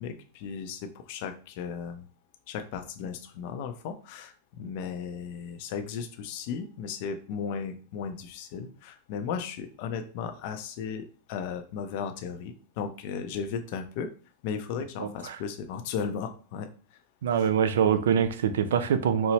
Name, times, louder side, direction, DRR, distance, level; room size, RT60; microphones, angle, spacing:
voice 1, 0.0-2.1 2.5-14.1 14.4-16.7, left 6 dB, 55° left, 0.5 m, -35 dB
voice 2, 15.0-15.4 17.2-19.3, right 8 dB, 90° right, 0.4 m, -24 dB
4.2 x 2.0 x 2.8 m
supercardioid pair, 135°, 0 cm